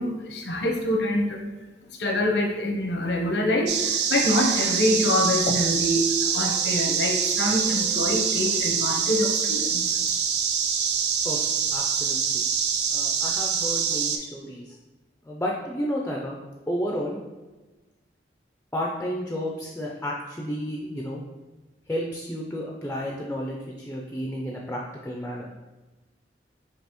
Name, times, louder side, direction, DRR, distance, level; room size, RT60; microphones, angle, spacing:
voice 1, 0.0-1.4 2.0-9.8, left 1 dB, 80° left, 1 dB, 0.8 m, -25 dB
sound 1, 3.7-14.2, right 7 dB, 70° right, 0.4 m, -25 dB
voice 2, 11.2-12.5 12.9-14.7 15.2-16.4 16.7-17.2 18.7-21.2 21.9-25.5, equal, 10° left, -2 dB, 0.4 m, -32 dB
5.2 x 2.8 x 2.9 m, 1.2 s
head